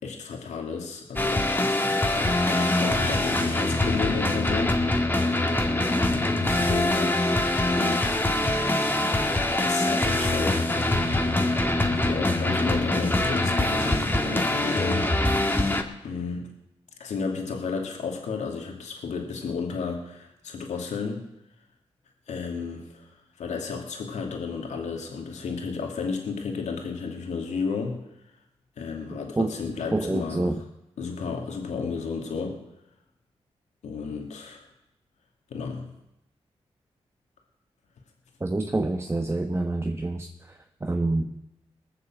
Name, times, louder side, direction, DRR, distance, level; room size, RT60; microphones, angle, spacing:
voice 1, 0.0-1.4 2.1-4.8 6.3-7.3 7.6-8.1 9.5-10.7 11.9-15.1 16.0-16.5 17.0-21.2 22.3-23.1 23.4-28.0 28.8-30.5 31.0-32.6 33.8-34.6 35.5-35.9, left 5 dB, 85° left, 2 dB, 2.6 m, -32 dB
sound 1, 1.2-15.8, left 1 dB, 15° left, 2.0 m, -24 dB
voice 2, 29.9-30.6 38.4-41.3, right 2 dB, 20° right, 4 dB, 1.2 m, -27 dB
19.5 x 6.8 x 7.6 m, 0.88 s
cardioid pair, 50°, 12 cm